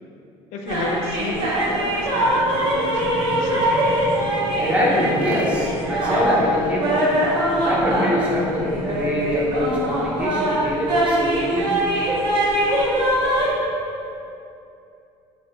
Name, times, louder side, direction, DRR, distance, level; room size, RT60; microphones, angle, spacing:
voice 1, 0.5-3.7, left 3 dB, 70° left, 2 dB, 0.4 m, -32 dB
Carnatic varnam by Dharini in Sahana raaga, 0.7-13.5, right 1 dB, 50° right, 0.6 m, -22 dB
voice 2, 1.4-12.3, equal, 10° right, -5 dB, 0.6 m, -25 dB
2.3 x 2.1 x 3.9 m, 2.7 s
cardioid pair, 135°, 11 cm